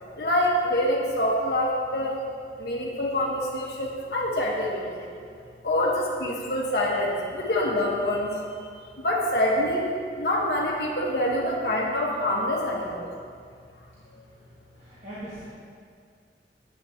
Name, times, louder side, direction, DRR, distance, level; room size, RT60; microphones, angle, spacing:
voice 1, 0.0-2.2 2.6-5.1 5.6-8.6 9.0-13.1 14.1-14.2, left 1 dB, 70° left, -2 dB, 1.4 m, -26 dB
voice 2, 14.7-15.4, right 1 dB, 40° right, -10 dB, 1.5 m, -40 dB
9.8 x 8.5 x 2.9 m, 2.2 s
head